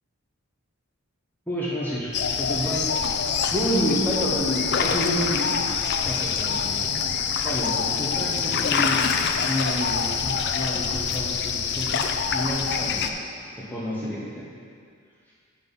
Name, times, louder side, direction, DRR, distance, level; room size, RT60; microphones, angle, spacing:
voice 1, 1.5-2.1 2.4-2.9 6.0-6.9 7.4-7.7 8.0-9.1 9.4-12.0 12.3-13.2 13.6-14.4 15.3-15.4, left 1 dB, 10° left, -8 dB, 1.1 m, -31 dB
sound 1, 2.1-13.1, left 6 dB, 50° left, 0.4 m, -25 dB
voice 2, 3.5-5.6 7.8-8.0, equal, 10° right, -6 dB, 1.2 m, -25 dB
8.2 x 5.9 x 5.4 m, 2.2 s
head